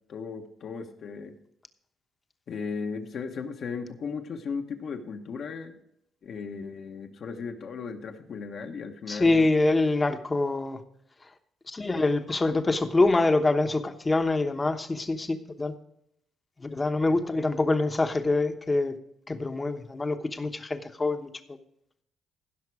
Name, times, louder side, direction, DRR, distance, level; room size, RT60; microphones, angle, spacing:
voice 1, 0.1-1.3 2.5-5.8 6.2-9.5, left 5 dB, 60° left, 5 dB, 1.2 m, -36 dB
voice 2, 9.1-10.8 11.7-15.7 16.6-19.0 19.3-21.3, left 2 dB, 25° left, 8 dB, 1.0 m, -25 dB
15.5 x 5.9 x 4.8 m, 0.75 s
cardioid pair, 90°, 0 cm